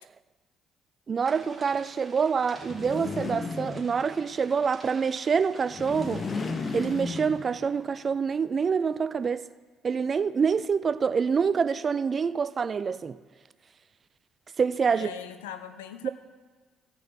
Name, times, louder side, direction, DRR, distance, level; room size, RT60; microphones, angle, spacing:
voice 1, 1.1-6.3 6.7-9.4 9.8-13.2 14.6-15.1 16.0-16.1, right 6 dB, 40° right, 0.4 m, -26 dB
sound 1, 1.2-7.2, right 2 dB, 20° right, 2.7 m, -51 dB
sound 2, 2.6-4.3 5.7-7.8, left 4 dB, 40° left, 0.9 m, -34 dB
voice 2, 14.9-16.1, left 9 dB, 85° left, 0.5 m, -40 dB
16.0 x 5.6 x 4.0 m
hypercardioid pair, 55°, 0 cm